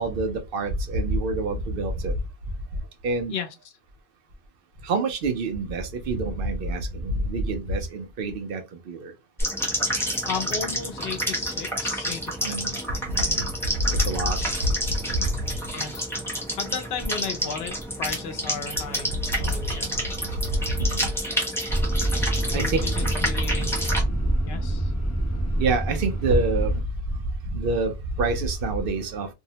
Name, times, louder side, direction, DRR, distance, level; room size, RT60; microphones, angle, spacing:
voice 1, 0.0-2.1 3.0-3.3 4.8-8.6 8.9-9.1 12.4-12.7 13.1-13.5 14.1-14.4 20.8-21.1 22.5-22.8 25.6-26.7 27.5-27.9 28.2-29.3, right 3 dB, 65° right, 0.7 m, -26 dB
sound 1, 9.4-24.0, equal, 5° left, 0.9 m, -29 dB
voice 2, 10.2-12.6 15.7-16.1 16.6-17.7 18.0-19.9 22.5-23.7 24.5-24.9, left 6 dB, 75° left, 0.9 m, -34 dB
sound 2, 21.7-26.8, right 1 dB, 20° left, 0.5 m, -26 dB
2.6 x 2.0 x 2.7 m
omnidirectional pair, 1.0 m